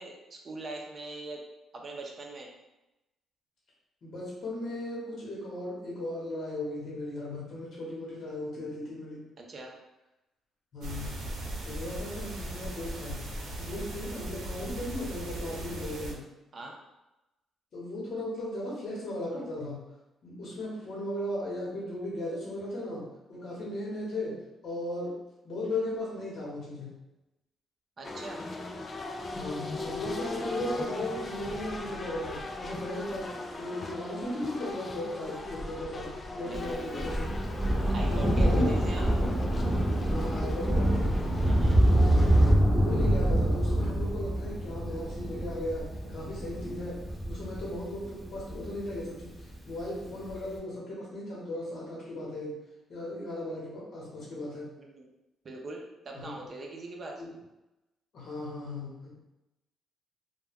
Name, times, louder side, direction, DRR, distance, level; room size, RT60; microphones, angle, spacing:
voice 1, 0.0-1.4 1.7-2.5 9.4-9.7 16.5-16.8 28.0-28.4 36.4-37.1 37.9-39.1 41.4-41.8 54.8-55.0 55.4-57.2, right 2 dB, 40° right, 1 dB, 0.5 m, -42 dB
voice 2, 4.0-9.2 10.7-11.2 11.6-13.2 13.6-16.2 17.7-19.8 20.2-24.3 24.6-25.1 25.4-26.9 29.3-33.3 33.6-37.3 38.1-38.7 40.1-41.1 42.7-47.0 47.3-49.3 49.7-52.5 52.9-54.7 56.1-56.4 57.2-57.3 58.1-59.2, left 1 dB, 60° left, -5 dB, 1.0 m, -36 dB
sound 1, 10.8-16.1, right 1 dB, 80° right, 0.7 m, -38 dB
sound 2, 28.0-42.5, left 2 dB, 35° left, 0.3 m, -39 dB
Thunder, 36.5-49.4 50.3-50.4, right 1 dB, 5° right, 0.8 m, -26 dB
2.2 x 2.2 x 3.4 m, 0.96 s
cardioid pair, 90°, 0 cm